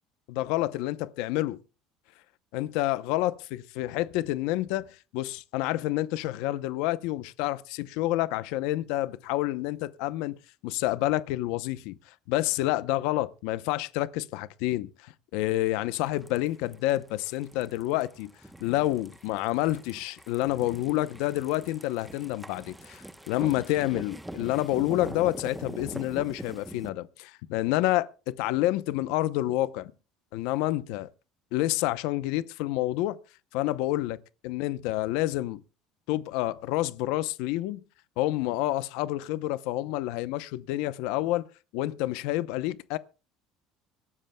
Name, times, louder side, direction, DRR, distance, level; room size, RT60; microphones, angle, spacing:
voice 1, 0.3-1.6 2.5-18.3 18.6-29.9 30.3-31.1 31.5-33.2 33.5-34.2 34.4-35.6 36.1-37.8 38.2-41.5 41.7-43.0, left 16 dB, 75° left, 0.7 m, -28 dB
sound 1, 16.0-26.9, right 1 dB, 5° right, 0.9 m, -43 dB
25.0 x 12.0 x 2.2 m
cardioid pair, 140°, 0 cm